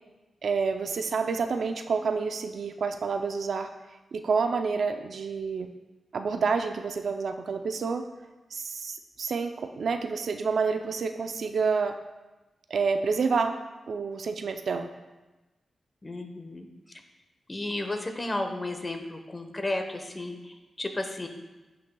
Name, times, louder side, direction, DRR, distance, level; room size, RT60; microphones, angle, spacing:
voice 1, 0.4-3.7 4.1-5.7 6.1-8.1 8.5-12.0 12.7-13.6 13.9-14.9, right 5 dB, 70° right, 7 dB, 0.4 m, -28 dB
voice 2, 16.0-16.7 17.5-21.3, left 2 dB, 30° left, 5 dB, 1.0 m, -33 dB
11.5 x 5.6 x 2.3 m, 1.1 s
cardioid pair, 50°, 0 cm